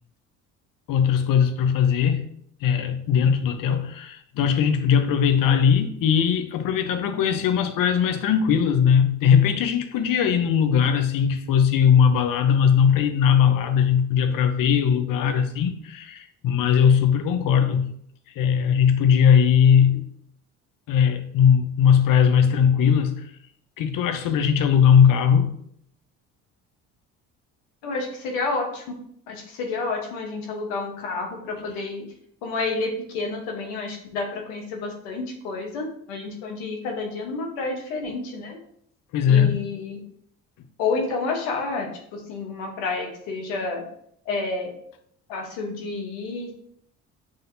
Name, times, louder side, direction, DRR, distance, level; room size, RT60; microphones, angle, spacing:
voice 1, 0.9-2.3 2.6-17.9 18.4-20.0 20.9-23.3 23.8-25.5 39.1-39.6, left 7 dB, 65° left, 0.7 m, -19 dB
voice 2, 27.8-28.8 29.3-32.0 32.4-38.6 39.3-40.0 40.8-43.8 44.3-44.7 45.3-46.5, left 3 dB, 90° left, 1.0 m, -29 dB
6.2 x 2.6 x 2.6 m
supercardioid pair, 70°, 36 cm